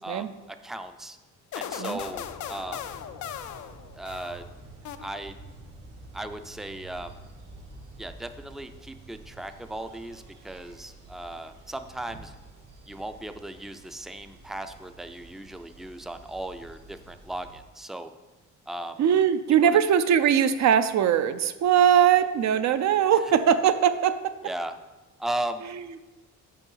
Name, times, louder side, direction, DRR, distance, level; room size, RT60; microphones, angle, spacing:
voice 1, 0.6-1.2 1.5-2.9 3.9-4.5 5.0-5.4 6.1-7.2 8.0-12.3 12.9-18.1 18.7-19.0 19.6-19.7 24.4-24.7 25.2-25.7, right 1 dB, ahead, 9 dB, 0.4 m, -36 dB
sound 1, 1.5-4.5 4.8-5.5, left 9 dB, 75° left, 0.5 m, -38 dB
sound 2, 1.9-17.6, right 2 dB, 85° right, 1.6 m, -49 dB
voice 2, 19.0-24.3, right 9 dB, 65° right, 10 dB, 0.6 m, -21 dB
5.7 x 5.5 x 5.6 m, 1.2 s
cardioid pair, 90°, 30 cm